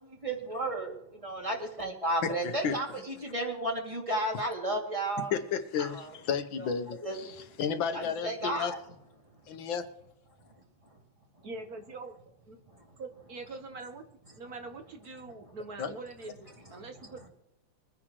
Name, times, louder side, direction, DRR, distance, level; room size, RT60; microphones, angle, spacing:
voice 1, 0.0-5.3 5.8-6.2 6.6-7.4 7.9-8.8 9.3-9.4 10.8-11.0 11.4-11.5 12.7-12.9 15.4-15.6 16.6-16.9, right 1 dB, 15° right, 0 dB, 2.4 m, -34 dB
voice 2, 2.2-2.8 5.3-7.3 7.6-8.7 9.5-9.9 15.8-15.9, left 7 dB, 80° left, 9 dB, 1.8 m, -32 dB
voice 3, 11.4-12.1 12.5-12.6 13.0-14.0 14.4-17.3, right 3 dB, 55° right, 6 dB, 1.6 m, -43 dB
23.0 x 10.0 x 3.1 m, 0.82 s
omnidirectional pair, 2.1 m